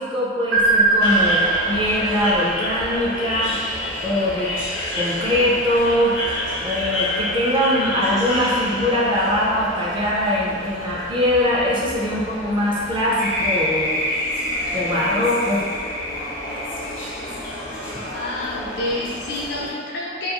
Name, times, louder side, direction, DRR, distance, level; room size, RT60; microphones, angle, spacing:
voice 1, 0.0-3.6 4.0-4.5 4.9-6.2 6.6-14.0 14.7-15.6, left 1 dB, 25° right, -5 dB, 0.4 m, -22 dB
sound 1, 0.5-3.4, right 2 dB, 80° right, 0.5 m, -21 dB
sound 2, 1.0-19.7, left 1 dB, 90° left, 0.8 m, -30 dB
sound 3, 13.2-17.7, left 1 dB, 55° right, 0.9 m, -27 dB
voice 2, 18.1-20.3, left 1 dB, 60° left, -3 dB, 0.4 m, -28 dB
2.3 x 2.3 x 2.9 m, 2.1 s
head